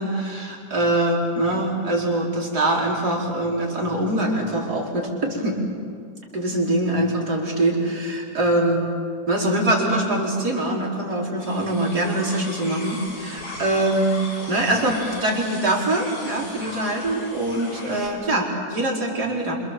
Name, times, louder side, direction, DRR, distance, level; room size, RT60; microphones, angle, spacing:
voice 1, 0.0-5.6 6.3-8.9 9.3-14.2 14.5-19.6, right 1 dB, 55° right, -2 dB, 5.1 m, -23 dB
sound 1, 11.4-18.1, left 1 dB, 85° left, 5.5 m, -38 dB
28.5 x 27.0 x 7.6 m, 2.1 s
omnidirectional pair, 2.1 m